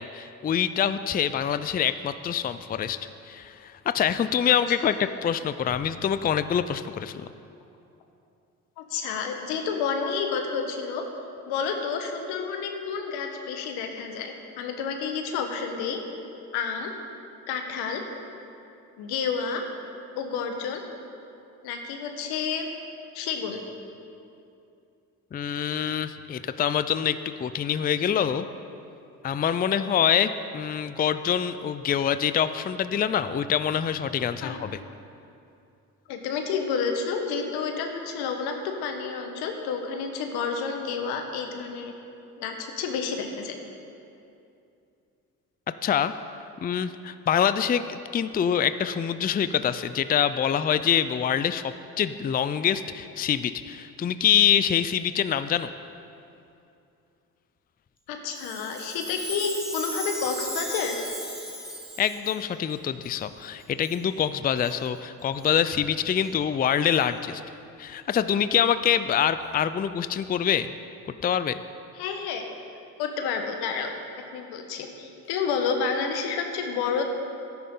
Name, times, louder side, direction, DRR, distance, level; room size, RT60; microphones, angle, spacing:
voice 1, 0.0-3.0 3.3-7.3 25.3-28.5 29.2-34.7 45.8-46.1 46.6-55.7 62.0-67.4 67.8-70.7 71.2-71.6, left 8 dB, 25° left, 12 dB, 0.4 m, -25 dB
voice 2, 4.5-4.9 8.8-11.0 11.5-16.0 16.5-16.9 17.5-18.0 19.0-19.6 20.1-20.8 21.6-22.7 23.1-23.6 34.4-34.7 36.1-41.9 42.4-43.6 58.1-61.0 71.9-72.5 73.0-73.9 74.3-77.0, left 6 dB, 80° left, 4 dB, 1.2 m, -30 dB
Chime, 58.3-62.4 63.0-63.1 63.8-64.0 64.6-64.7 65.4-65.5 66.2-66.3 67.0-67.1, equal, ahead, 2.9 m, -36 dB
13.0 x 10.0 x 3.8 m, 2.6 s
supercardioid pair, 60°, 38 cm